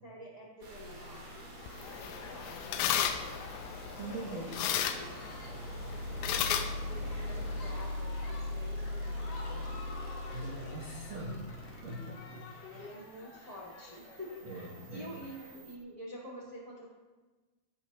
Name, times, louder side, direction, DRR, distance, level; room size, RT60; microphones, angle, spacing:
voice 1, 0.0-1.3 1.8-3.5 4.1-5.2 6.2-10.0 12.7-14.3 14.9-16.9, equal, 10° right, -6 dB, 3.8 m, -48 dB
sound 1, 0.6-15.8, left 1 dB, 35° right, 2.9 m, -42 dB
sound 2, 0.8-15.6, left 3 dB, 55° left, 4.6 m, -52 dB
sound 3, 1.7-7.7, left 9 dB, 85° left, 3.2 m, -35 dB
voice 2, 4.0-4.6 10.3-11.4 11.8-12.5 12.7-12.9 14.4-15.1, right 1 dB, 80° right, -3 dB, 1.5 m, -42 dB
17.0 x 15.5 x 3.1 m, 1.2 s
omnidirectional pair, 6.0 m